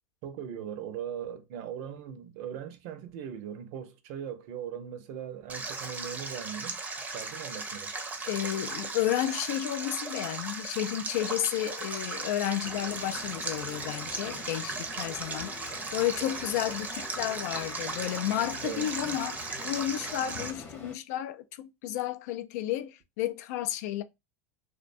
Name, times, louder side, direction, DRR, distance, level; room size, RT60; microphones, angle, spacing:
voice 1, 0.2-7.9 18.6-18.9, right 9 dB, 60° right, 0.5 m, -39 dB
Stream, 5.5-20.5, right 3 dB, 15° right, 0.5 m, -37 dB
voice 2, 8.3-24.0, left 12 dB, 70° left, 0.3 m, -32 dB
Crowd, 12.6-20.9, left 3 dB, 20° left, 0.8 m, -45 dB
2.5 x 2.1 x 2.5 m
supercardioid pair, 115°, 9 cm